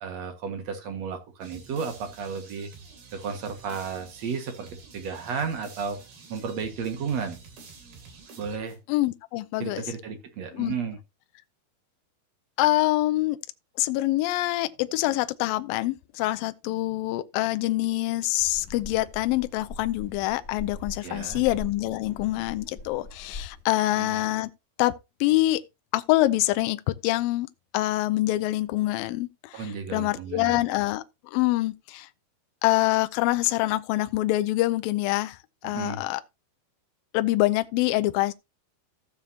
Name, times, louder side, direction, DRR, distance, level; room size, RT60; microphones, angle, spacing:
voice 1, 0.0-2.7 3.1-4.7 4.9-6.0 6.3-7.4 8.4-8.8 9.6-11.0 21.0-21.4 23.9-24.2 29.5-30.7 35.6-36.0, right 6 dB, 50° right, 2.5 m, -33 dB
sound 1, 1.4-9.1, right 5 dB, 75° right, 4.7 m, -49 dB
voice 2, 8.9-9.8 10.5-10.7 12.6-13.4 13.8-24.5 24.8-24.9 25.2-25.6 25.9-27.5 27.7-31.0 31.3-32.1 32.6-36.2 37.1-38.3, left 17 dB, 80° left, 2.3 m, -25 dB
sound 2, 18.3-23.6, left 2 dB, 20° left, 4.3 m, -42 dB
15.5 x 7.1 x 2.8 m
omnidirectional pair, 4.5 m